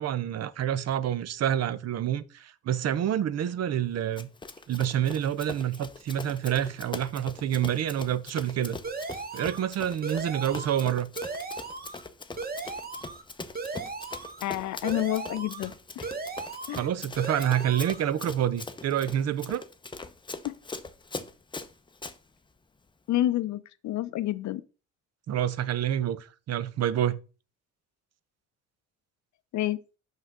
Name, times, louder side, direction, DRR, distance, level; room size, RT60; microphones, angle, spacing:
voice 1, 0.0-4.3 4.7-8.8 9.3-11.1 16.7-19.6 25.3-27.2, right 10 dB, 55° right, 0.6 m, -28 dB
Run, 4.2-22.2, left 3 dB, 15° left, 0.6 m, -42 dB
sound 1, 8.8-9.7 10.0-10.9 11.2-12.0 12.4-13.2 13.6-14.4 14.8-15.7 16.0-16.9 17.2-18.0, right 4 dB, 30° right, 1.0 m, -37 dB
voice 2, 14.4-16.1 16.7-16.9 20.4-20.6 23.1-24.6 29.5-29.8, left 14 dB, 70° left, 0.6 m, -29 dB
5.6 x 5.5 x 3.6 m
cardioid pair, 90°, 30 cm